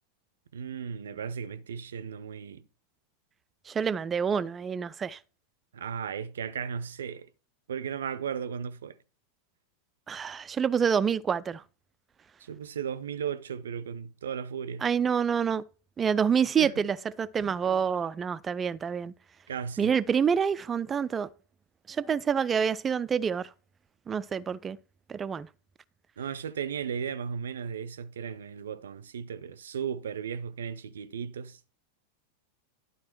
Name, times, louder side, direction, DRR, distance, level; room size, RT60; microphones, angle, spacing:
voice 1, 0.5-2.6 5.7-7.3 7.7-9.0 12.4-14.8 16.6-16.8 19.5-20.0 26.2-31.6, right 7 dB, 65° right, 0.6 m, -35 dB
voice 2, 3.7-5.2 10.1-11.6 14.8-15.6 16.0-19.1 19.8-21.3 21.9-23.5 24.1-24.8 25.1-25.5, right 7 dB, 20° right, 0.4 m, -27 dB
11.5 x 4.0 x 4.5 m
figure-of-eight pair, 90°, 0 cm